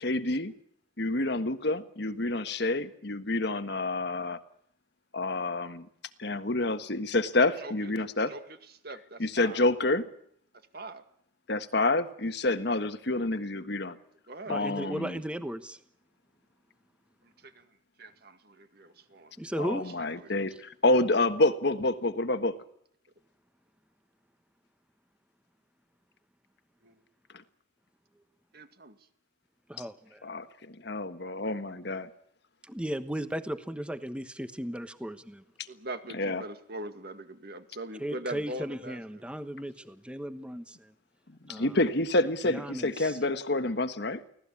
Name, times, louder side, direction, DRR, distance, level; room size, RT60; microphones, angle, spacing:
voice 1, 0.0-0.5 1.0-4.4 5.1-5.9 6.2-8.3 9.2-10.1 11.5-14.0 14.5-15.2 19.6-22.6 30.2-32.1 36.2-36.4 41.5-44.2, left 2 dB, 60° left, 1.4 m, -28 dB
voice 2, 7.6-7.9 8.2-9.7 10.5-11.0 14.3-15.1 17.2-19.3 19.8-20.3 26.8-27.0 28.5-29.1 35.7-39.2, right 1 dB, 55° right, 2.1 m, -42 dB
voice 3, 14.5-15.8 19.4-19.9 29.7-30.4 32.6-35.4 38.0-40.9 41.5-41.8 42.4-43.2, equal, 5° right, 1.1 m, -36 dB
24.5 x 17.5 x 8.6 m
head